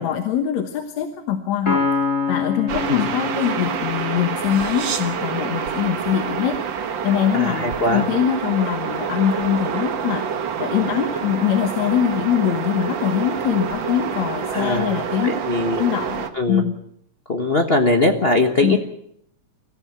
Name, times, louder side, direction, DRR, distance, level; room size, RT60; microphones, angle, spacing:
voice 1, 0.0-1.8 2.3-6.6 7.0-10.3 10.6-15.3 15.8-16.7 18.6-18.8, left 10 dB, 70° left, 7 dB, 2.5 m, -23 dB
Piano, 1.7-5.3, left 4 dB, 25° left, 3.4 m, -26 dB
sound 1, 2.7-16.3, right 7 dB, 50° right, 1.6 m, -27 dB
voice 2, 7.3-8.1 14.5-14.9 15.2-15.8 16.3-16.6 17.3-18.8, left 2 dB, 55° left, 4 dB, 0.6 m, -20 dB
23.5 x 14.5 x 9.0 m, 0.73 s
omnidirectional pair, 3.3 m